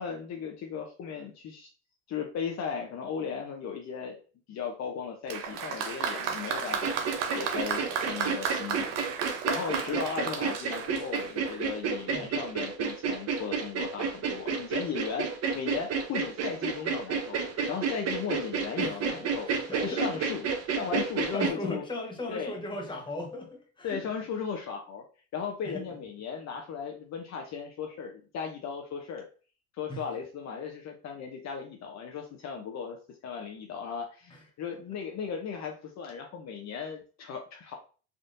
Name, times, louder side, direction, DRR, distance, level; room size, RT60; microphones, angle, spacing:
voice 1, 0.0-1.7 2.1-4.2 4.5-7.0 7.3-15.3 15.5-17.4 17.7-21.8 22.3-22.6 23.8-25.0 25.3-29.3 29.8-33.0 33.2-37.7, left 6 dB, 50° left, 2 dB, 0.7 m, -36 dB
Applause, 5.3-11.7, right 6 dB, 85° right, 0.7 m, -33 dB
sound 1, 6.8-21.5, right 5 dB, 45° right, 0.7 m, -31 dB
voice 2, 18.8-19.2 19.5-20.3 21.3-24.1 25.6-25.9 29.9-30.0, left 2 dB, 15° left, 1 dB, 1.0 m, -37 dB
3.5 x 2.5 x 2.5 m, 0.37 s
supercardioid pair, 85°, 36 cm